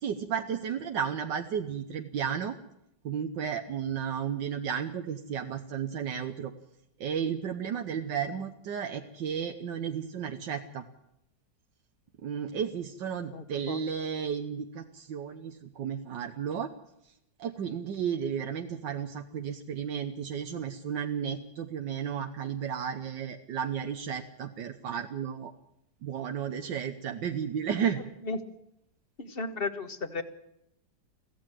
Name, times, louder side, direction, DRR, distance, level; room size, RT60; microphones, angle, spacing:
voice 1, 0.0-2.6 3.0-6.5 7.0-10.8 12.2-16.7 17.4-25.5 26.0-28.0, right 7 dB, 80° right, 6 dB, 1.7 m, -33 dB
voice 2, 13.3-13.8 28.2-28.4 29.2-30.2, left 3 dB, 35° left, 10 dB, 1.6 m, -34 dB
23.0 x 15.5 x 7.6 m, 0.79 s
omnidirectional pair, 1.9 m